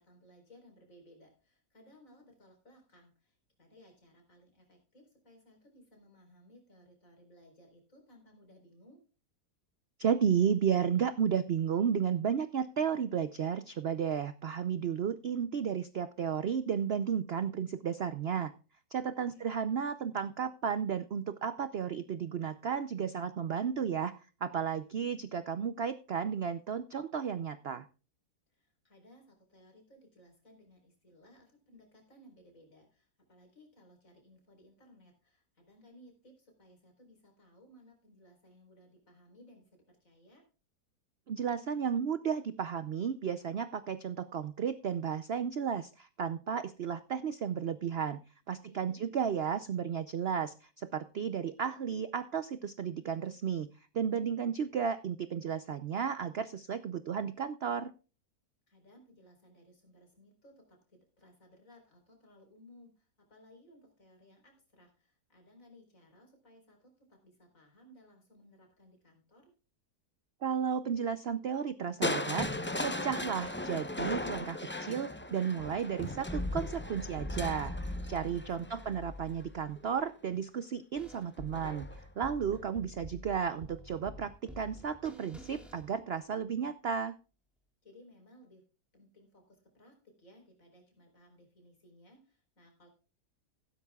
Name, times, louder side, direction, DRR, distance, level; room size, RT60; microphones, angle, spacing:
voice 1, 0.0-9.0 19.2-19.7 28.5-40.4 48.6-49.1 58.7-69.5 78.3-79.0 87.8-88.6 88.9-92.9, equal, 50° left, 3 dB, 4.6 m, -60 dB
voice 2, 10.0-18.5 18.9-24.1 24.4-27.9 41.3-48.2 48.5-53.7 53.9-57.9 70.4-72.5 72.8-87.1, right 7 dB, 60° right, 13 dB, 0.6 m, -33 dB
Crushing, 72.0-80.0 81.5-82.0 82.5-82.6, left 1 dB, 15° left, 0.4 m, -37 dB
sound 1, 80.9-86.4, equal, ahead, 2.1 m, -49 dB
15.5 x 12.5 x 2.3 m, 0.35 s
omnidirectional pair, 1.8 m